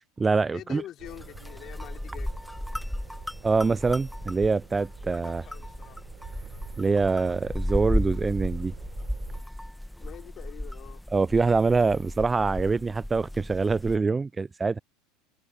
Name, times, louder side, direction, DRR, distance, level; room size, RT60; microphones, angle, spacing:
voice 1, 0.0-0.8 3.4-5.4 6.8-8.7 11.1-14.8, right 4 dB, 20° right, 0.3 m, -25 dB
voice 2, 0.5-2.3 5.1-6.1 10.0-11.0, left 12 dB, 45° left, 3.8 m, -45 dB
sound 1, 1.0-14.0, left 1 dB, 5° left, 1.2 m, -35 dB
sound 2, 1.0-9.4, right 13 dB, 50° right, 5.6 m, -47 dB
hypercardioid pair, 80°, 0 cm